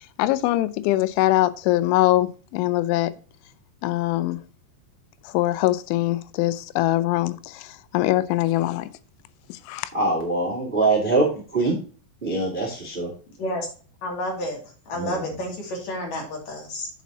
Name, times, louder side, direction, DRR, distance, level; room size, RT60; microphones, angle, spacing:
voice 1, 0.2-3.1 3.8-4.4 5.3-8.9 9.5-9.9, left 16 dB, 90° left, 3.0 m, -23 dB
voice 2, 9.9-11.8 12.2-13.1 14.9-15.2, right 2 dB, 45° right, 0.6 m, -23 dB
voice 3, 14.0-14.6 14.9-16.9, left 1 dB, 45° left, 3.1 m, -30 dB
8.1 x 7.3 x 2.8 m
omnidirectional pair, 5.4 m